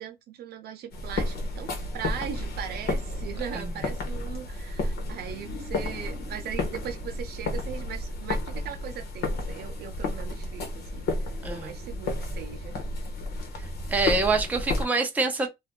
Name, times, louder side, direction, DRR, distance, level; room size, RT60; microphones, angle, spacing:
voice 1, 0.0-12.8 15.4-15.5, right 9 dB, 85° right, 0.7 m, -39 dB
sound 1, 0.9-14.9, left 2 dB, 85° left, 1.1 m, -32 dB
voice 2, 11.4-11.7 13.9-15.5, right 3 dB, 10° right, 0.5 m, -25 dB
2.7 x 2.4 x 3.5 m
cardioid pair, 175°, 16 cm